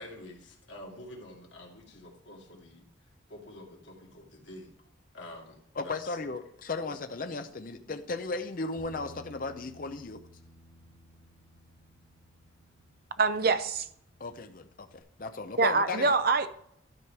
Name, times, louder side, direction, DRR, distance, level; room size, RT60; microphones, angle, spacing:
voice 1, 0.0-2.9 3.3-4.7 5.1-6.3 6.9-7.0 7.8-7.9, left 1 dB, 65° left, 2.4 m, -48 dB
voice 2, 5.8-10.2 14.2-16.1, left 3 dB, 45° left, 0.6 m, -36 dB
Bass guitar, 8.8-15.0, equal, 5° right, 3.2 m, -56 dB
voice 3, 13.2-13.9 15.6-16.5, right 4 dB, 50° right, 0.7 m, -25 dB
12.5 x 5.1 x 4.7 m
head